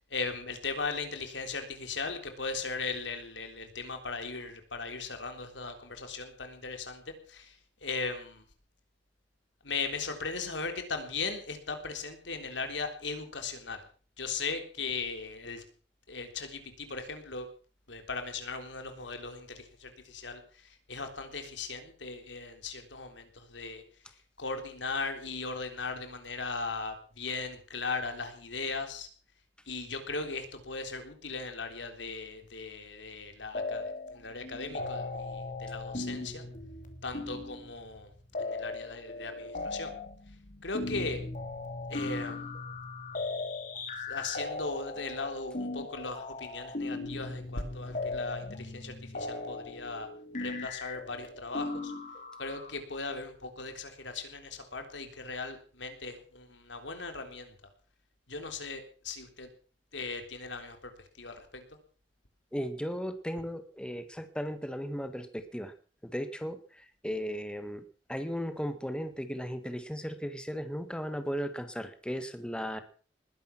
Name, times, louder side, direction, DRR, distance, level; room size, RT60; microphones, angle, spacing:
voice 1, 0.1-7.6 7.8-8.4 9.6-13.8 14.2-15.6 16.1-17.5 17.9-23.8 24.4-29.1 29.7-36.4 37.0-38.1 38.4-39.9 40.6-41.2 41.9-42.5 44.0-50.1 50.4-51.9 52.4-57.5 58.3-59.5 59.9-61.7, left 4 dB, 85° left, 6 dB, 3.7 m, -38 dB
sound 1, 33.6-34.2 34.4-52.7, left 2 dB, 45° left, 2.9 m, -38 dB
voice 2, 62.5-65.7 66.0-67.8 68.1-72.8, equal, 5° left, 9 dB, 1.7 m, -36 dB
20.5 x 11.0 x 6.0 m, 0.42 s
head